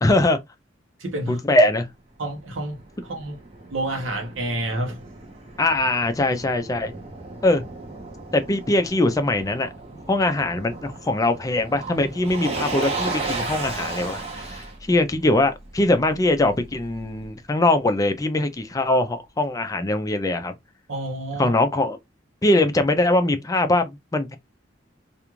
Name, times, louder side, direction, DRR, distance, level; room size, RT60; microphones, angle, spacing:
voice 1, 0.0-0.4 1.3-1.9 5.6-6.9 7.4-7.6 8.3-9.7 10.1-20.5 21.4-22.0 22.4-24.4, left 2 dB, 20° left, 0.4 m, -21 dB
voice 2, 1.0-1.4 2.2-3.4 3.7-5.0 20.9-21.6, right 1 dB, 85° right, 0.9 m, -29 dB
Motor vehicle (road), 2.2-17.3, right 3 dB, 30° right, 0.7 m, -35 dB
2.5 x 2.3 x 2.9 m
head